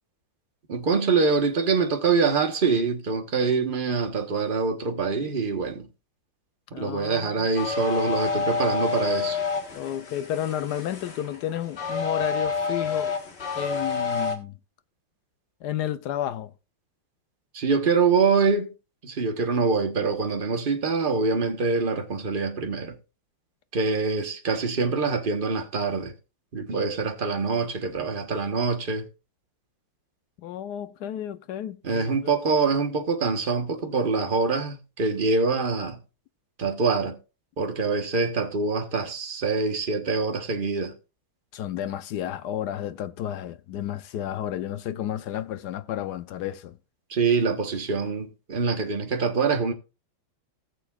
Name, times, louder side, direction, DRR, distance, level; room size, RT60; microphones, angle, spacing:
voice 1, 0.7-5.9 6.7-9.4 17.5-18.7 19.0-23.0 23.7-26.1 26.5-29.1 31.8-36.0 36.6-37.2 37.6-40.9 47.1-49.7, right 4 dB, 30° right, 1.1 m, -25 dB
voice 2, 6.7-7.5 9.7-13.1 13.5-14.6 15.6-16.5 30.4-32.3 41.5-46.8, left 11 dB, 70° left, 1.0 m, -32 dB
sound 1, 7.6-14.4, left 5 dB, 35° left, 1.5 m, -29 dB
18.5 x 6.9 x 2.4 m
omnidirectional pair, 2.2 m